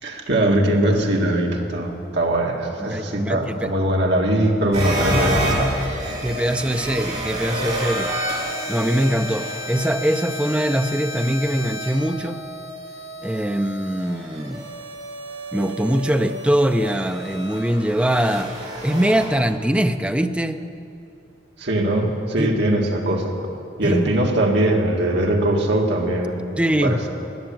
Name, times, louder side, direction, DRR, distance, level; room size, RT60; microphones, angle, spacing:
voice 1, 0.0-5.8 21.6-23.3 23.8-26.4 26.8-27.1, right 1 dB, 60° right, 1 dB, 1.9 m, -21 dB
voice 2, 2.8-3.7 6.2-8.1 8.7-12.4 13.2-14.7 15.5-18.5 18.8-20.6 22.4-22.7 23.8-24.2 26.6-27.0, right 1 dB, 5° right, 8 dB, 0.5 m, -22 dB
sound 1, 4.7-19.3, equal, 35° right, 3.7 m, -29 dB
15.0 x 10.0 x 9.0 m, 2.7 s
head